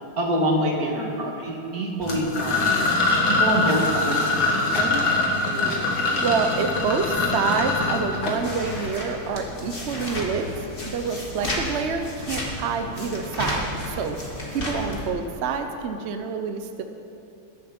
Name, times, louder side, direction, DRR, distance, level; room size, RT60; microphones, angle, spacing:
voice 1, 0.2-2.7 3.3-5.0, right 1 dB, 45° right, 0 dB, 2.2 m, -26 dB
sound 1, 2.0-8.9, left 2 dB, 65° left, 2.5 m, -23 dB
sound 2, 3.8-7.1, equal, 85° left, 3.0 m, -38 dB
voice 2, 5.7-16.8, right 5 dB, 75° right, 6 dB, 0.6 m, -28 dB
sound 3, 7.0-15.1, left 1 dB, 25° left, 2.1 m, -33 dB
21.5 x 8.0 x 6.0 m, 2.7 s
omnidirectional pair, 2.3 m